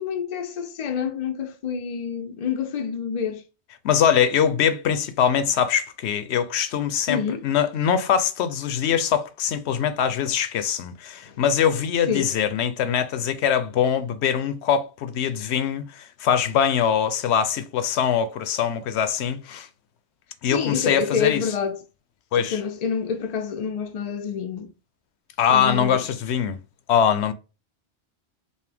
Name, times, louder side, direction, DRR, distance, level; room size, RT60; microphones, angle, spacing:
voice 1, 0.0-3.4 7.1-7.4 11.2-11.4 12.1-12.3 20.5-21.8 22.4-24.7 25.5-26.0, left 7 dB, 55° left, 0.4 m, -28 dB
voice 2, 3.8-19.7 20.4-21.4 22.3-22.6 25.4-26.6 26.9-27.3, left 8 dB, 80° left, 0.8 m, -22 dB
5.4 x 2.1 x 3.4 m
omnidirectional pair, 1.1 m